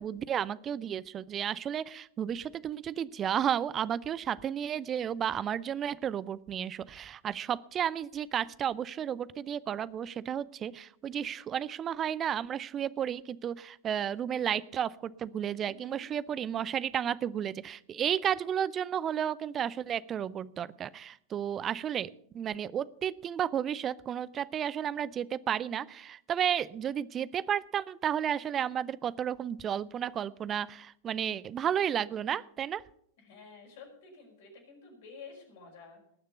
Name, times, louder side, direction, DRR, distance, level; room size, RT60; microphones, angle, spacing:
voice 1, 0.0-32.8, right 9 dB, 25° right, 20 dB, 0.5 m, -32 dB
voice 2, 15.5-16.0 33.2-36.0, left 4 dB, 55° left, 0 dB, 5.4 m, -51 dB
19.0 x 6.6 x 7.0 m, 0.68 s
figure-of-eight pair, 90°, 0 cm